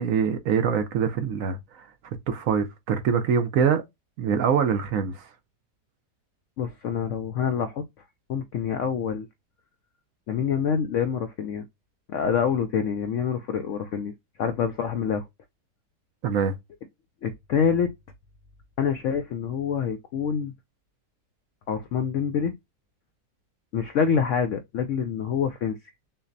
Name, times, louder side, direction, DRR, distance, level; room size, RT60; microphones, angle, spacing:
voice 1, 0.0-1.9 2.3-3.8 4.2-5.3 16.2-16.5, right 7 dB, 70° right, 0.8 m, -24 dB
voice 2, 6.6-7.8 8.3-9.3 10.3-11.7 12.1-14.1 14.4-15.3 17.2-17.9 18.8-20.5 21.7-22.5 23.7-25.8, left 7 dB, 75° left, 0.7 m, -26 dB
5.7 x 2.1 x 2.5 m
omnidirectional pair, 1.8 m